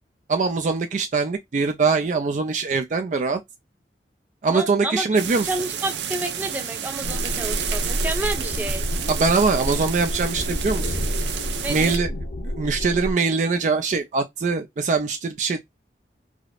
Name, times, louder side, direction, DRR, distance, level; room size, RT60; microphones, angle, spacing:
voice 1, 0.3-3.4 4.4-5.5 9.1-11.0 11.7-12.1 12.6-15.6, right 4 dB, 45° right, 0.3 m, -22 dB
voice 2, 4.5-5.1 5.4-8.9 11.6-11.9, right 2 dB, 10° right, 0.7 m, -30 dB
sound 1, 5.2-12.0, right 8 dB, 85° right, 0.6 m, -31 dB
sound 2, 7.0-13.1, equal, 65° left, 0.9 m, -28 dB
4.8 x 2.0 x 2.3 m
head